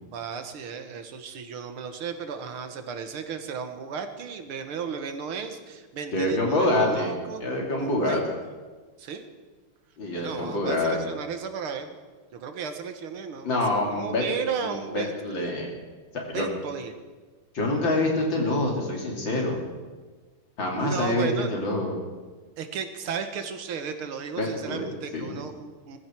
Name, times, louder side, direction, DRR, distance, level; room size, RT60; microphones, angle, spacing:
voice 1, 0.0-7.4 7.8-8.2 9.0-9.3 10.1-11.9 12.3-15.1 16.3-16.9 20.8-21.6 22.6-26.0, right 6 dB, 80° right, 7 dB, 2.1 m, -34 dB
voice 2, 6.1-7.1 7.4-8.2 10.0-11.0 13.4-14.2 14.6-15.7 16.1-16.5 17.5-19.6 20.6-21.9 24.4-24.9 25.1-25.3, left 2 dB, 60° left, -1 dB, 3.7 m, -26 dB
21.5 x 14.5 x 4.6 m, 1.4 s
omnidirectional pair, 2.3 m